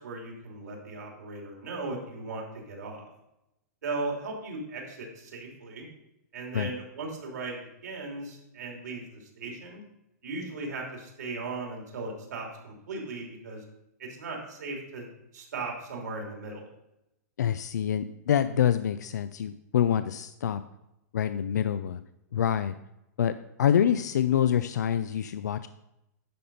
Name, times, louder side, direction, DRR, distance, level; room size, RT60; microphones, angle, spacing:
voice 1, 0.0-3.0 3.8-5.8 6.3-9.8 10.2-13.6 14.0-15.1 15.3-16.7, right 3 dB, 80° right, 0 dB, 3.0 m, -37 dB
voice 2, 17.4-20.6 21.1-22.0 22.3-22.7 23.2-23.3 23.6-25.7, left 9 dB, 85° left, 12 dB, 0.4 m, -26 dB
10.5 x 4.3 x 5.3 m, 0.88 s
hypercardioid pair, 150°, 9 cm